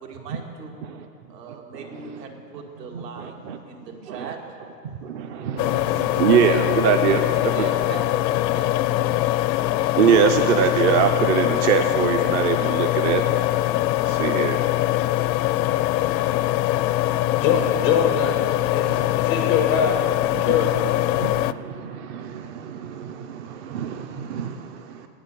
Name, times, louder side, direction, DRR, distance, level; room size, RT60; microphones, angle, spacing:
voice 1, 0.1-0.7 1.3-3.4 3.7-4.4 6.5-6.7 7.0-9.3, right 5 dB, 70° right, 1 dB, 2.2 m, -39 dB
voice 2, 1.7-2.2 2.9-3.6 4.0-4.3 5.0-7.2 10.0-13.2 14.1-14.6 21.1-25.1, right 8 dB, 45° right, 7 dB, 0.6 m, -23 dB
sound 1, 5.6-21.5, left 15 dB, 80° left, 0.6 m, -22 dB
voice 3, 17.4-20.9, left 7 dB, 20° left, 3 dB, 0.3 m, -24 dB
9.5 x 8.7 x 8.3 m, 2.8 s
hypercardioid pair, 140°, 50 cm